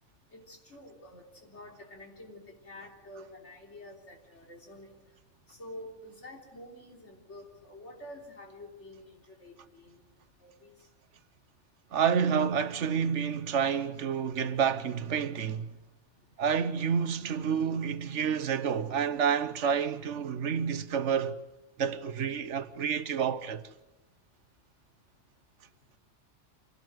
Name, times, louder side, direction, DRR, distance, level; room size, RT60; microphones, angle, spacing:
voice 1, 0.3-4.9 5.5-10.0 10.4-10.7, left 1 dB, 75° left, 3.9 m, -48 dB
voice 2, 11.9-15.7 16.4-21.4 21.8-23.6, right 7 dB, 75° right, 1.3 m, -29 dB
26.0 x 17.5 x 7.9 m
omnidirectional pair, 1.2 m